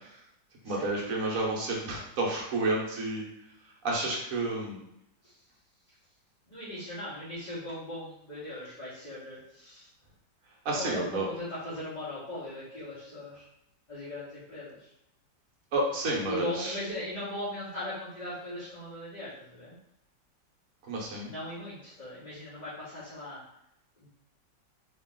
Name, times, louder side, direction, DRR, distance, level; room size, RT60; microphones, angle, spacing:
voice 1, 0.6-3.3 3.8-4.8 10.6-11.3 15.7-16.7 20.9-21.3, right 2 dB, 55° right, -2 dB, 1.2 m, -30 dB
voice 2, 6.5-9.9 10.7-13.5 13.9-14.9 16.3-19.7 21.2-23.4 24.0-24.1, left 1 dB, 25° left, -12 dB, 1.2 m, -39 dB
3.2 x 2.9 x 3.7 m, 0.79 s
omnidirectional pair, 2.0 m